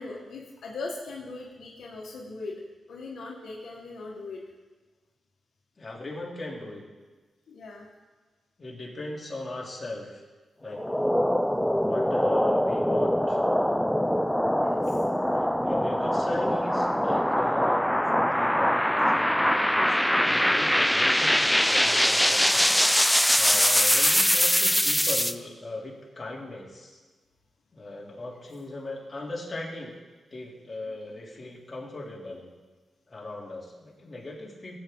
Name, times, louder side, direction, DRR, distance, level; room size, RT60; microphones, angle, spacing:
voice 1, 0.0-2.5 2.9-4.4 7.5-7.9 14.6-15.0 23.5-23.7, left 3 dB, 80° left, -2 dB, 1.6 m, -39 dB
voice 2, 5.8-6.8 8.6-10.2 10.6-10.8 11.8-13.4 14.9-27.0 27.7-29.9 30.3-32.5 33.1-34.8, left 2 dB, 35° left, -3 dB, 3.0 m, -39 dB
sound 1, 10.7-25.3, equal, 5° left, 0.5 m, -23 dB
16.0 x 8.3 x 3.8 m, 1.3 s
cardioid pair, 70°, 0 cm